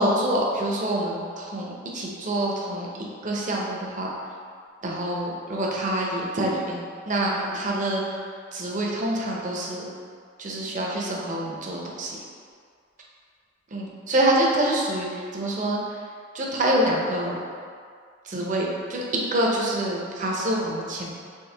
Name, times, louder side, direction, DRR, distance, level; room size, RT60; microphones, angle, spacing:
voice 1, 0.0-2.9 3.2-4.1 4.8-6.8 7.1-8.0 8.5-9.8 10.4-12.1 13.7-15.1 15.3-15.8 16.3-17.3 18.3-19.0 19.3-21.2, right 1 dB, 40° right, -2 dB, 0.6 m, -26 dB
4.6 x 3.0 x 3.3 m, 2.1 s
head